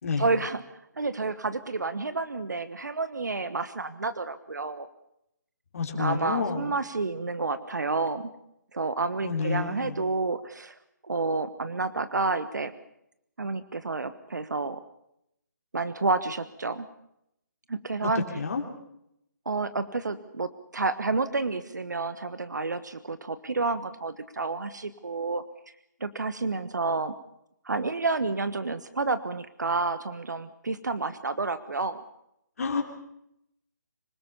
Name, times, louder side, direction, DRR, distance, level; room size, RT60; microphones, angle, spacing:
voice 1, 0.2-0.6 1.0-4.9 5.9-8.2 8.7-10.8 11.0-12.7 13.4-14.8 15.7-16.9 17.7-18.2 19.4-25.4 26.0-27.1 27.6-32.0, right 3 dB, 70° right, 13 dB, 1.3 m, -30 dB
voice 2, 5.7-6.7 9.2-10.0 18.0-18.1 18.3-18.6 32.6-32.8, left 5 dB, 50° left, 1 dB, 3.4 m, -29 dB
26.0 x 18.0 x 7.0 m, 0.79 s
figure-of-eight pair, 145°, 10 cm